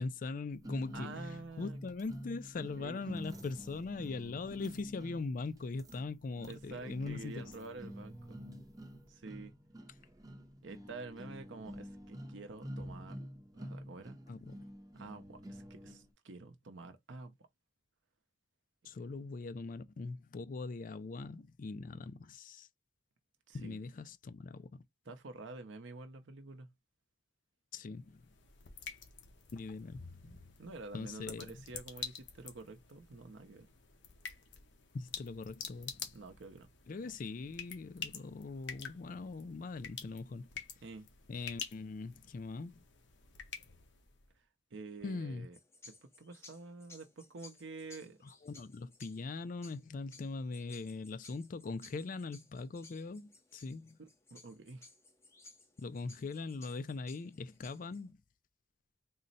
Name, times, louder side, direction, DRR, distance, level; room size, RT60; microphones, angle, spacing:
voice 1, 0.0-7.4 14.3-14.5 18.8-22.7 23.5-24.8 27.7-28.2 29.5-30.2 30.9-31.5 34.9-36.1 36.9-40.5 41.3-42.8 45.0-45.5 48.4-54.0 55.8-58.2, left 3 dB, 45° left, 0.4 m, -41 dB
sound 1, 0.6-16.1, equal, 20° right, 0.7 m, -48 dB
voice 2, 0.9-1.8 2.8-3.0 6.5-8.4 9.1-9.5 10.6-13.2 13.5-14.2 14.9-17.3 23.5-23.8 25.1-26.7 30.6-33.7 36.1-36.7 37.0-37.1 40.8-41.1 44.7-45.6 45.9-48.2 54.0-54.9, right 3 dB, 75° right, 0.7 m, -48 dB
sound 2, 27.9-44.3, left 6 dB, 70° left, 0.8 m, -49 dB
sound 3, 45.5-58.1, left 3 dB, 15° left, 0.7 m, -59 dB
3.9 x 2.1 x 4.0 m
head